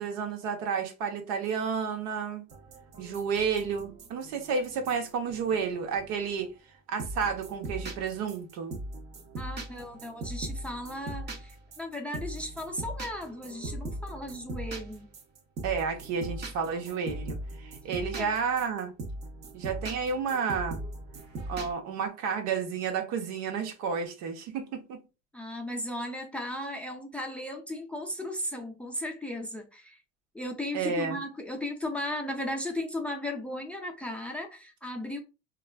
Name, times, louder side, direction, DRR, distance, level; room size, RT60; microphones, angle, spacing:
voice 1, 0.0-2.4 3.0-6.5 6.9-8.8 15.6-18.9 19.5-20.8 21.5-25.0 30.7-31.2, right 6 dB, 80° right, 0.9 m, -31 dB
sound 1, 2.5-6.4 7.0-21.7, right 2 dB, 35° right, 0.6 m, -40 dB
voice 2, 9.4-15.1 18.1-18.3 25.3-30.0 30.3-35.2, left 1 dB, 5° left, 0.4 m, -36 dB
3.2 x 2.3 x 2.2 m
cardioid pair, 140°, 29 cm